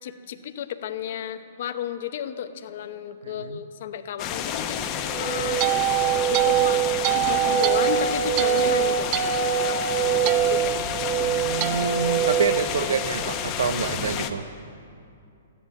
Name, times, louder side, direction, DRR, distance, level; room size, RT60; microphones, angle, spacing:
voice 1, 0.0-5.9 6.3-6.8 7.1-9.1 10.2-10.9, left 9 dB, 60° left, 9 dB, 0.9 m, -33 dB
voice 2, 3.2-3.6 11.2-14.4, right 5 dB, 80° right, 12 dB, 0.8 m, -27 dB
sound 1, 4.2-14.3, left 8 dB, 30° left, 0.9 m, -30 dB
sound 2, 5.1-13.4, right 10 dB, 35° right, 0.5 m, -24 dB
13.5 x 10.0 x 8.7 m, 2.5 s
hypercardioid pair, 145°, 0 cm